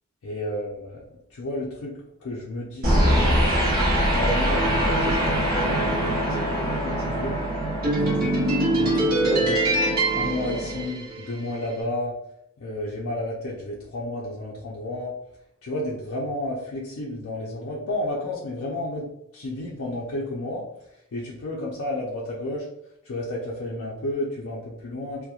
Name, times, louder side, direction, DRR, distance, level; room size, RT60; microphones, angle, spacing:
voice 1, 0.2-1.0 1.3-3.4 4.1-7.4 8.0-8.4 8.8-9.6 10.1-12.1 12.6-15.1 15.6-19.1 19.3-20.6 21.1-22.7 23.0-25.3, left 1 dB, 70° left, -5 dB, 0.4 m, -31 dB
sound 1, 2.8-11.4, right 1 dB, 40° right, 0.8 m, -22 dB
2.8 x 2.1 x 2.3 m, 0.79 s
head